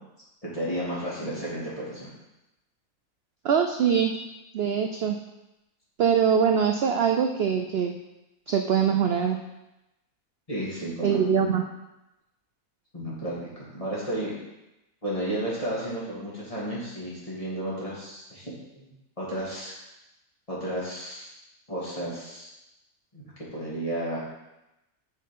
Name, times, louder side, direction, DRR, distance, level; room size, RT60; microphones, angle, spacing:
voice 1, 0.4-2.1 10.5-11.5 12.9-14.3 15.0-18.9 19.2-19.7 20.5-21.3 21.7-22.5 23.1-24.2, right 1 dB, 25° left, -8 dB, 2.8 m, -33 dB
voice 2, 3.4-4.1 4.5-5.2 6.0-7.9 8.5-9.4 11.0-11.6, right 7 dB, 60° right, 4 dB, 0.7 m, -23 dB
6.4 x 6.3 x 5.4 m, 0.95 s
omnidirectional pair, 1.5 m